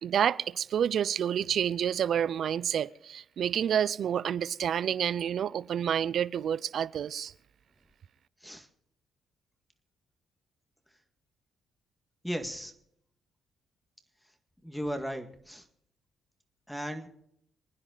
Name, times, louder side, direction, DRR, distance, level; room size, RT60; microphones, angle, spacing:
voice 1, 0.0-7.3, right 9 dB, 65° right, 0.6 m, -29 dB
voice 2, 12.2-12.7 14.6-15.6 16.7-17.1, equal, 5° left, 1.9 m, -36 dB
26.5 x 9.8 x 4.0 m
cardioid pair, 90°, 0 cm